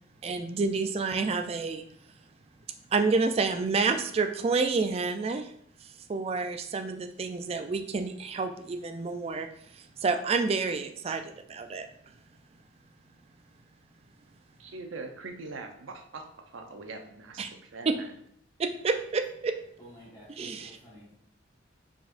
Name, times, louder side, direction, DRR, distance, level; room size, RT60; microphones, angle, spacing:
voice 1, 0.2-1.8 2.9-5.5 6.1-9.5 9.7-11.9 17.4-17.5 17.9-18.0 18.6-19.5 20.4-20.7, right 4 dB, 30° right, 6 dB, 0.3 m, -29 dB
voice 2, 14.6-18.1, right 3 dB, 90° right, 4 dB, 0.6 m, -42 dB
voice 3, 19.8-21.1, equal, 15° left, -10 dB, 1.3 m, -51 dB
4.7 x 4.2 x 2.5 m, 0.67 s
head